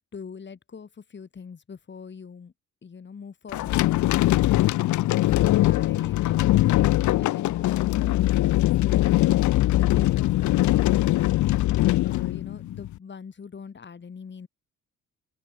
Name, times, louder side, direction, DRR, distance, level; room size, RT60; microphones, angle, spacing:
voice 1, 0.1-2.5 2.8-4.4 5.2-11.4 12.0-14.5, left 6 dB, 40° left, 3.6 m, -43 dB
sound 1, 3.5-13.0, left 16 dB, 70° left, 0.6 m, -22 dB
open air
cardioid pair, 90°, 30 cm